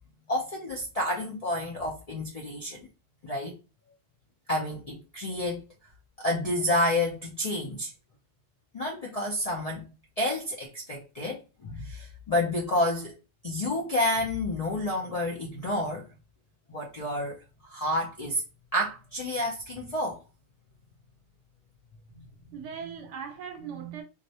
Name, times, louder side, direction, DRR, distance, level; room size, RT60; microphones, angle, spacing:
voice 1, 0.3-2.9 3.2-3.6 4.5-5.6 6.2-7.9 8.7-9.8 10.2-13.1 13.4-16.1 16.7-17.4 17.6-18.4 18.7-20.2, left 1 dB, 60° left, 0.4 m, -29 dB
voice 2, 22.1-24.0, right 7 dB, 80° right, 0.9 m, -40 dB
2.4 x 2.0 x 2.6 m
omnidirectional pair, 1.2 m